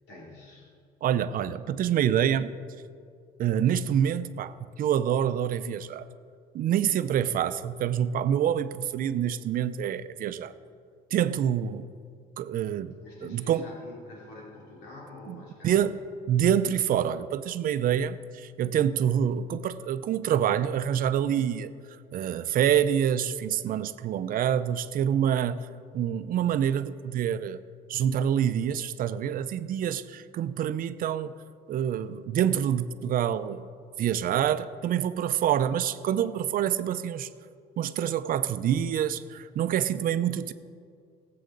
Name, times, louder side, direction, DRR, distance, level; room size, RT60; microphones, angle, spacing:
voice 1, 0.1-0.7 13.0-15.9, left 2 dB, 80° left, -4 dB, 3.2 m, -46 dB
voice 2, 1.0-2.5 3.4-6.0 6.5-10.5 11.1-11.9 12.4-13.0 13.2-13.7 15.3-15.4 15.6-15.9 16.3-21.7 22.1-25.7 25.9-27.6 27.9-31.3 31.7-33.7 34.0-37.3 37.8-40.5, right 9 dB, 55° right, 13 dB, 0.6 m, -26 dB
20.0 x 7.8 x 3.9 m, 2.3 s
cardioid pair, 110°, 17 cm